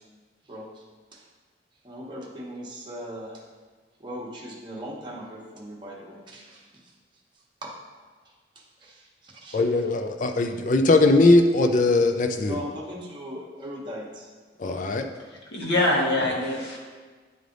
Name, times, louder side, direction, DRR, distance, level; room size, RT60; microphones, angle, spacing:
voice 1, 0.4-0.8 1.1-1.3 1.8-3.4 4.0-6.9 7.6-7.7 8.5-9.6 12.5-14.3, equal, 25° right, -4 dB, 1.1 m, -39 dB
voice 2, 9.5-12.6 14.6-15.1, left 2 dB, 45° left, 6 dB, 0.4 m, -20 dB
voice 3, 15.5-16.8, left 1 dB, 85° left, -3 dB, 1.5 m, -24 dB
9.4 x 3.3 x 3.9 m, 1.4 s
head